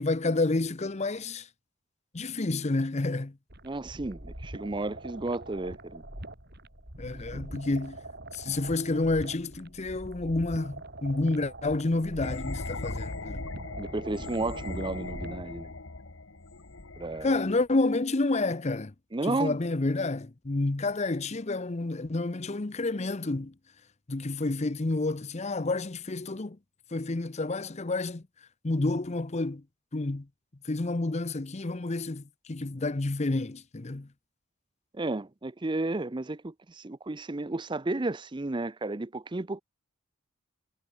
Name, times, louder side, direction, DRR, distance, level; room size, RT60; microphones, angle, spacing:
voice 1, 0.0-1.5 2.1-3.4 7.0-8.0 8.3-13.4 17.2-18.9 19.2-23.5 24.1-26.6 26.9-28.2 28.6-29.6 29.9-30.3 30.6-34.1, left 2 dB, 30° left, 0.7 m, -29 dB
sound 1, 3.5-15.5, right 1 dB, 50° right, 5.5 m, -44 dB
voice 2, 3.6-6.0 7.2-7.4 13.8-15.7 17.0-17.4 19.1-19.6 34.9-39.6, right 2 dB, 20° right, 0.6 m, -33 dB
sound 2, 12.2-17.7, left 2 dB, 65° left, 1.8 m, -39 dB
head